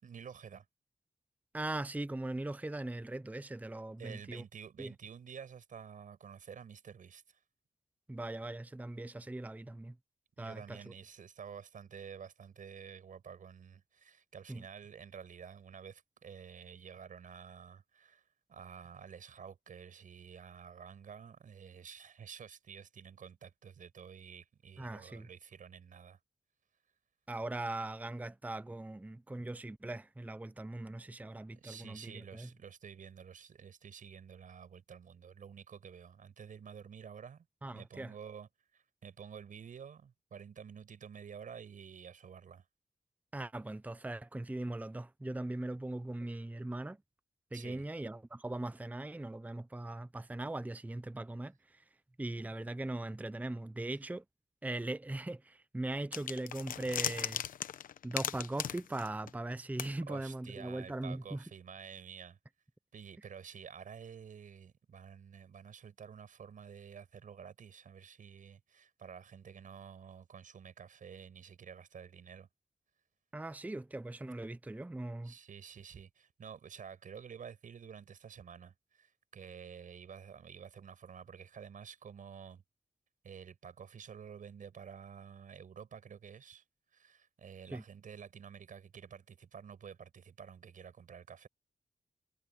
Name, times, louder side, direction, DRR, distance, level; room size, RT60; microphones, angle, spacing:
voice 1, 0.0-0.6 4.0-7.4 10.4-18.2 18.5-26.2 31.5-37.5 37.7-42.7 47.5-47.8 60.1-62.4 62.9-72.5 75.2-82.6 83.2-86.6 86.9-91.5, right 7 dB, 75° right, 6.2 m, -50 dB
voice 2, 1.5-4.4 4.8-4.9 8.1-10.0 10.4-10.9 14.5-14.6 24.8-25.3 27.3-32.5 37.6-38.1 43.3-47.0 47.5-51.8 52.2-54.2 54.6-57.4 58.0-61.4 73.3-75.3 87.6-87.8, right 2 dB, 10° right, 0.7 m, -40 dB
sound 1, 56.1-59.5 59.8-59.9, left 9 dB, 90° left, 1.0 m, -37 dB
cardioid pair, 60°, 14 cm